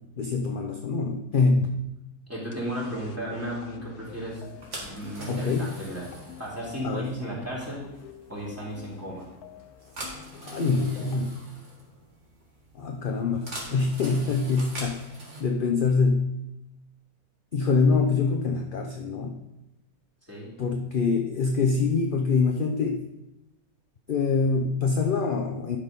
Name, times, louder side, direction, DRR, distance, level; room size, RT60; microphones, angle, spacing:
voice 1, 0.2-1.8 5.3-5.7 6.8-7.1 10.4-11.4 12.7-15.0 15.4-16.3 17.5-19.4 20.6-23.0 24.1-25.8, left 4 dB, 50° left, 3 dB, 0.7 m, -25 dB
voice 2, 2.3-6.1 6.4-7.8 8.3-9.3 20.2-20.6, right 1 dB, 10° right, -6 dB, 3.0 m, -34 dB
sound 1, 2.5-11.3, left 9 dB, 80° left, 1.2 m, -48 dB
sound 2, 4.3-15.4, equal, 50° right, 2.1 m, -42 dB
11.5 x 4.9 x 5.3 m, 0.92 s
omnidirectional pair, 1.6 m